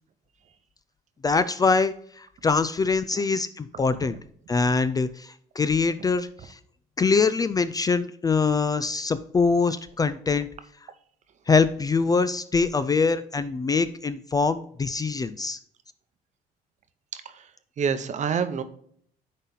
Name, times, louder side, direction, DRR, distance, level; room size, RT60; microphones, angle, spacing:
voice 1, 1.2-4.2 4.5-6.6 7.0-10.5 11.5-15.6, left 4 dB, 20° left, 13 dB, 0.4 m, -24 dB
voice 2, 17.8-18.6, right 6 dB, 45° right, 10 dB, 0.8 m, -27 dB
9.8 x 4.2 x 3.9 m, 0.64 s
cardioid pair, 110°, 17 cm